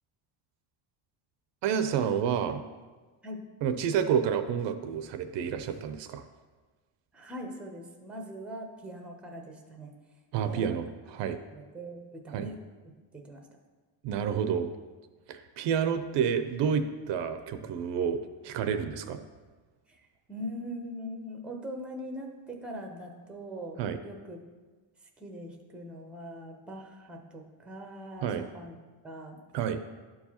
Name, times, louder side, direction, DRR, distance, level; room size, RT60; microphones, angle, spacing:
voice 1, 1.6-2.6 3.6-6.2 10.3-11.4 12.3-12.5 14.0-14.7 15.3-19.2 23.8-24.0 28.2-28.4 29.5-29.8, right 7 dB, 65° right, 9 dB, 0.6 m, -29 dB
voice 2, 7.1-9.9 10.5-10.8 11.2-11.3 11.5-12.6 13.1-13.4 19.9-24.4 25.2-28.8 29.0-29.4, equal, ahead, 2 dB, 0.6 m, -42 dB
12.0 x 4.6 x 2.8 m, 1.3 s
cardioid pair, 150°, 48 cm